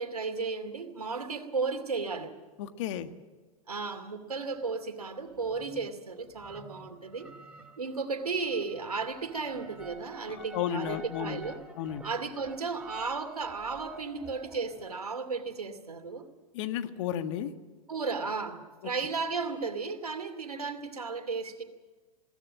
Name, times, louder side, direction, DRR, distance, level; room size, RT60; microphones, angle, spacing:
voice 1, 0.0-2.3 3.7-7.3 7.8-11.6 12.0-16.3 17.9-21.6, right 4 dB, 85° right, 8 dB, 2.7 m, -34 dB
voice 2, 2.6-3.1 10.3-11.4 11.8-12.0 16.5-17.5, left 10 dB, 55° left, 9 dB, 1.7 m, -33 dB
sound 1, 4.7-4.8 5.4-6.0 6.3-14.9, right 2 dB, 5° right, 2.9 m, -50 dB
21.5 x 18.0 x 7.5 m, 1.4 s
hypercardioid pair, 105°, 19 cm